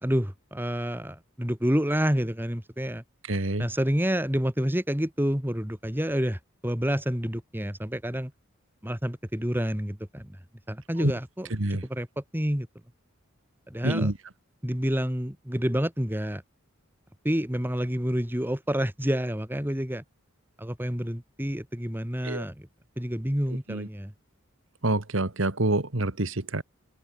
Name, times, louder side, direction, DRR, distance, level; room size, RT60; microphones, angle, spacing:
voice 1, 0.0-3.0 3.6-8.3 8.8-10.4 10.7-12.7 13.7-14.1 14.6-16.4 17.2-20.0 20.6-22.7 23.0-24.1, equal, 10° right, 2.5 m, -28 dB
voice 2, 3.3-3.7 11.0-11.1 11.6-11.8 13.8-14.1 22.2-22.4 23.7-23.9 24.8-26.6, right 2 dB, 65° right, 1.8 m, -27 dB
open air
head